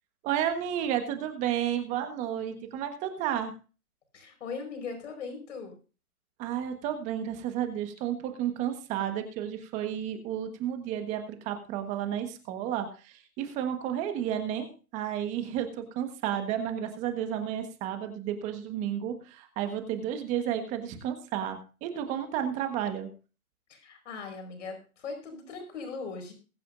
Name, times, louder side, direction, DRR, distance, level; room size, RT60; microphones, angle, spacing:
voice 1, 0.2-3.5 6.4-23.1, right 10 dB, 15° right, 7 dB, 1.3 m, -32 dB
voice 2, 4.1-5.7 23.7-26.3, left 4 dB, 55° left, 4 dB, 4.9 m, -39 dB
21.5 x 8.3 x 2.6 m, 0.35 s
hypercardioid pair, 150°, 44 cm